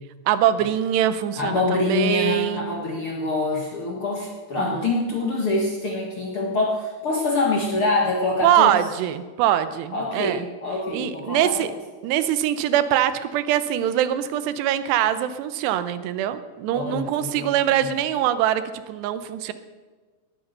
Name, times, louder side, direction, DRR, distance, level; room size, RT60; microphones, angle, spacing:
voice 1, 0.3-2.9 4.6-4.9 8.4-10.5 10.9-11.7 12.0-19.5, right 11 dB, 90° right, 12 dB, 2.9 m, -23 dB
voice 2, 1.3-8.7 9.9-11.7 16.7-17.5 17.8-17.9, left 2 dB, 45° left, -2 dB, 1.8 m, -25 dB
19.0 x 8.9 x 6.6 m, 1.4 s
omnidirectional pair, 4.8 m